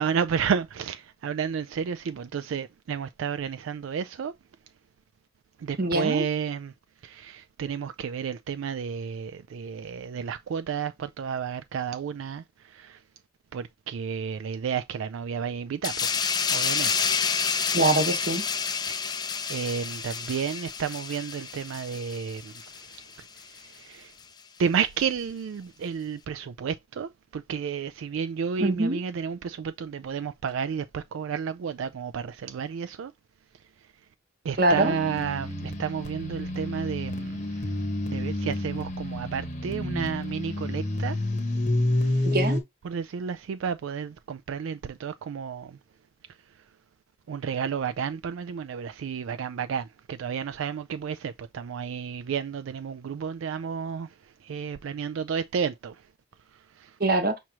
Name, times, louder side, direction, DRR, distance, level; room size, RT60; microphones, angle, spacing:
voice 1, 0.0-4.3 5.6-6.7 7.0-13.0 13.5-17.1 18.9-19.0 19.5-22.9 23.5-24.1 24.6-33.1 34.4-37.7 38.1-41.2 42.0-42.3 42.8-45.8 47.3-54.1 54.4-56.0 56.8-57.0, right 7 dB, 75° right, 0.3 m, -31 dB
voice 2, 5.8-6.2 17.7-18.4 28.6-29.0 34.6-34.9 42.2-42.6 57.0-57.3, right 2 dB, 45° right, 1.0 m, -23 dB
sound 1, 15.8-23.0 23.4-23.6, left 6 dB, 20° left, 0.3 m, -29 dB
sound 2, 34.7-42.6, left 1 dB, 35° left, 0.9 m, -29 dB
6.0 x 3.0 x 2.9 m
head